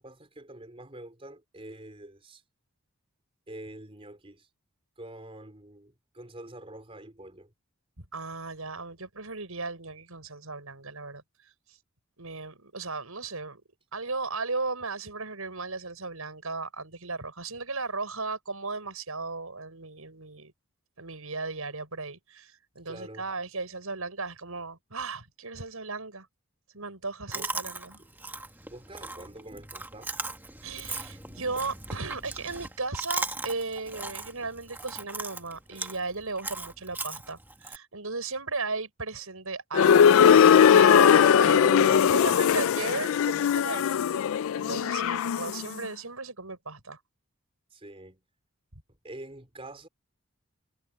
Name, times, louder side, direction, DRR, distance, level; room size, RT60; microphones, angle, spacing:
voice 1, 0.0-2.4 3.5-4.5 5.0-7.5 22.9-23.2 27.3-27.5 28.0-28.1 28.7-30.1 41.6-42.4 47.7-48.2 49.0-49.9, right 1 dB, 25° right, 3.8 m, -44 dB
voice 2, 8.0-11.2 12.2-13.6 13.9-20.5 21.0-26.3 26.7-28.0 30.6-44.1 44.5-47.0, right 3 dB, 85° right, 6.3 m, -36 dB
Chewing mastication, 27.3-37.8, right 2 dB, 10° right, 1.7 m, -38 dB
sound 1, 39.7-45.6, left 8 dB, 70° left, 0.3 m, -20 dB
head